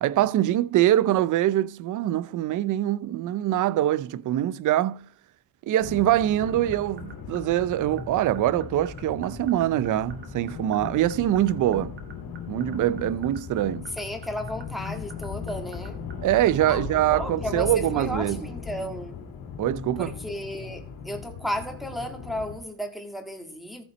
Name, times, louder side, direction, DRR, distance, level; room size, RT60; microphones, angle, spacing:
voice 1, 0.0-5.0 5.7-12.0 12.5-13.9 16.2-18.4 19.6-20.1, right 13 dB, 60° right, 0.6 m, -24 dB
sound 1, 5.8-22.6, left 6 dB, 85° left, 2.8 m, -38 dB
sound 2, 6.5-17.0, right 6 dB, 30° right, 2.1 m, -45 dB
voice 2, 13.9-16.0 16.7-19.2 20.0-23.8, equal, ahead, 1.8 m, -34 dB
14.0 x 5.8 x 4.2 m
cardioid pair, 145°, 34 cm